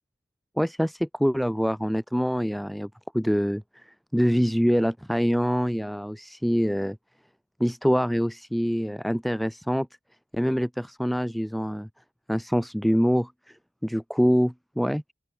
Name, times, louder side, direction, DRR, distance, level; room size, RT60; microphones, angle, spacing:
voice 1, 0.6-2.9 3.1-7.0 7.6-9.9 10.3-11.9 12.3-13.6 13.8-15.1, equal, ahead, 0.7 m, -25 dB
open air
head